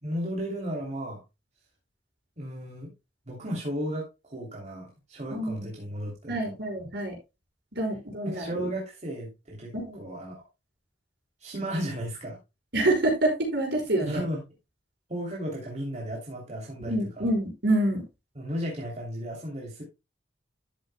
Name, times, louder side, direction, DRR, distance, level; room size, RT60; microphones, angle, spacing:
voice 1, 0.0-1.2 2.4-2.9 3.3-6.6 8.2-10.5 11.4-12.4 14.0-14.4 15.1-17.3 18.3-19.8, equal, 40° right, -2 dB, 3.0 m, -34 dB
voice 2, 5.3-5.7 6.3-7.2 7.8-8.7 9.7-10.0 12.7-14.2 16.9-18.0, right 1 dB, 65° right, 3 dB, 5.3 m, -27 dB
13.0 x 8.3 x 2.2 m, 0.25 s
head